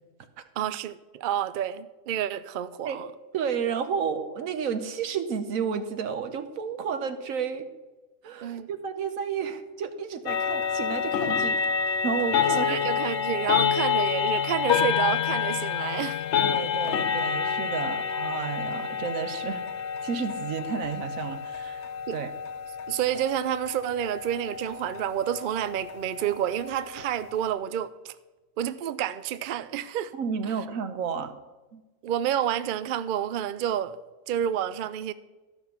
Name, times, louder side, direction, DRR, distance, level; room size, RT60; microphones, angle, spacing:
voice 1, 0.6-3.1 8.4-8.7 12.6-16.2 22.1-22.2 22.9-28.1 28.6-30.1 32.0-34.0 34.3-35.1, right 10 dB, 70° right, 0.5 m, -29 dB
voice 2, 3.3-7.7 8.2-11.6 12.0-12.8 16.4-19.7 20.0-22.3 30.1-31.3 31.7-31.8, right 7 dB, 85° right, 1.3 m, -31 dB
sound 1, 10.3-27.5, left 7 dB, 65° left, 0.8 m, -28 dB
13.0 x 5.9 x 5.8 m
omnidirectional pair, 1.4 m